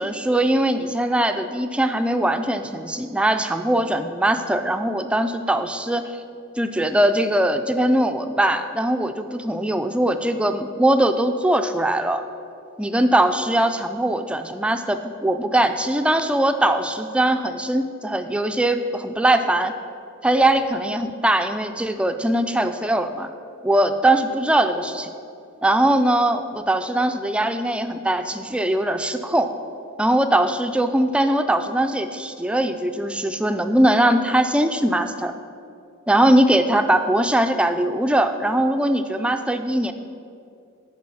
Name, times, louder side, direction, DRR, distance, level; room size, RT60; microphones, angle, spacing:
voice 1, 0.0-6.1 6.6-12.2 12.8-19.7 20.2-23.3 23.6-25.1 25.6-29.5 30.0-35.3 36.1-39.9, right 1 dB, 5° right, 8 dB, 0.3 m, -21 dB
10.5 x 4.6 x 5.5 m, 2.4 s
head